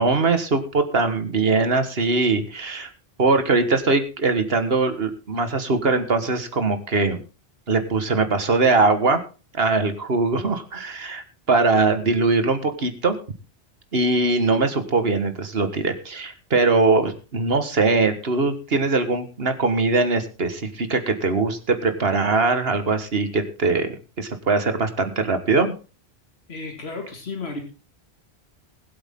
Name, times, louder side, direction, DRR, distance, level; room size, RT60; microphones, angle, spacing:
voice 1, 0.0-2.9 3.2-7.2 7.7-9.2 9.5-13.2 13.9-25.7, right 3 dB, 65° right, 8 dB, 1.8 m, -21 dB
voice 2, 26.5-27.6, left 3 dB, 70° left, 3 dB, 2.4 m, -33 dB
21.0 x 8.1 x 3.7 m, 0.34 s
omnidirectional pair, 1.1 m